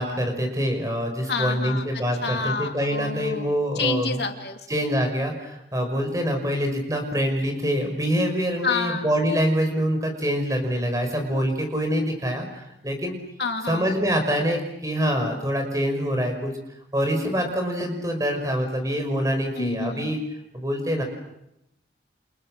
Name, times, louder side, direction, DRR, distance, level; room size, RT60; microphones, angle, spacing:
voice 1, 0.0-4.2 4.7-13.1 13.6-16.5 16.9-20.2 20.5-21.0, equal, 20° right, 4 dB, 5.9 m, -25 dB
voice 2, 1.3-1.8 2.2-3.5 3.8-4.6 8.6-9.0 13.4-13.9 19.5-20.1, left 4 dB, 70° left, 4 dB, 2.7 m, -28 dB
30.0 x 28.5 x 6.7 m, 0.84 s
head